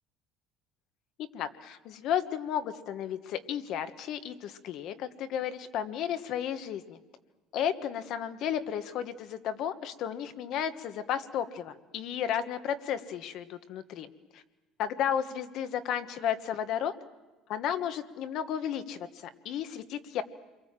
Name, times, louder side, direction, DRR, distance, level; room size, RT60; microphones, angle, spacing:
voice 1, 1.2-7.0 7.5-14.1 14.8-16.9 17.5-20.2, left 9 dB, 50° left, 10 dB, 1.4 m, -33 dB
29.0 x 23.0 x 7.5 m, 1.2 s
cardioid pair, 160°, 0 cm